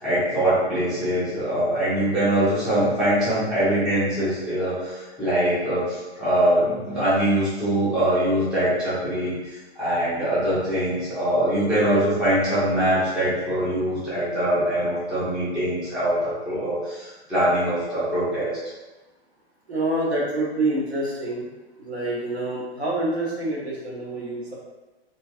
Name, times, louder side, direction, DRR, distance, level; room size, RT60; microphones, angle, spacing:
voice 1, 0.0-18.6, right 1 dB, ahead, -12 dB, 0.4 m, -23 dB
voice 2, 19.7-21.5 21.8-24.5, right 2 dB, 75° right, -5 dB, 1.0 m, -27 dB
2.4 x 2.2 x 2.6 m, 1.1 s
figure-of-eight pair, 110°, 32 cm